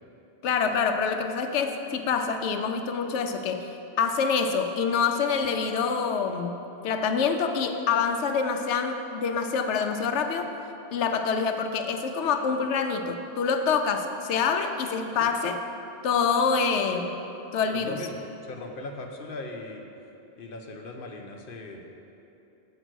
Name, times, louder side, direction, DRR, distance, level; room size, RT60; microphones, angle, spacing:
voice 1, 0.4-3.7 4.0-6.6 6.8-10.5 10.9-15.6 16.0-17.1 17.5-18.0, left 5 dB, 85° left, 6 dB, 0.9 m, -26 dB
voice 2, 17.7-19.9 20.4-21.9, left 2 dB, 55° left, 2 dB, 0.9 m, -39 dB
8.0 x 5.1 x 6.1 m, 2.9 s
omnidirectional pair, 1.2 m